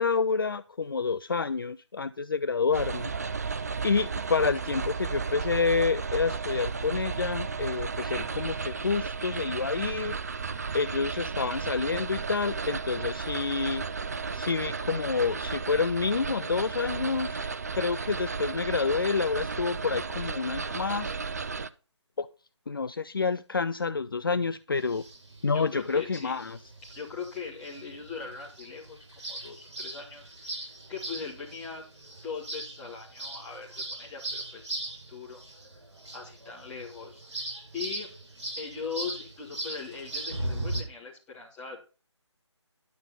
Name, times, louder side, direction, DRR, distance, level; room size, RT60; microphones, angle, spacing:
voice 1, 0.0-3.1 3.8-10.2 10.7-13.8 14.3-17.5 17.8-21.1 22.2-22.3 22.7-25.0 25.4-26.6, left 5 dB, 50° left, 0.4 m, -28 dB
sound 1, 2.7-21.7, right 5 dB, 35° right, 0.5 m, -34 dB
sound 2, 24.8-40.8, right 1 dB, 60° right, 5.7 m, -39 dB
voice 2, 25.5-26.4 26.9-31.8 32.2-34.7 35.1-35.4 36.1-37.5 37.7-38.1 38.6-41.8, left 5 dB, 10° left, 3.2 m, -40 dB
11.5 x 5.3 x 7.1 m
figure-of-eight pair, 150°, 15 cm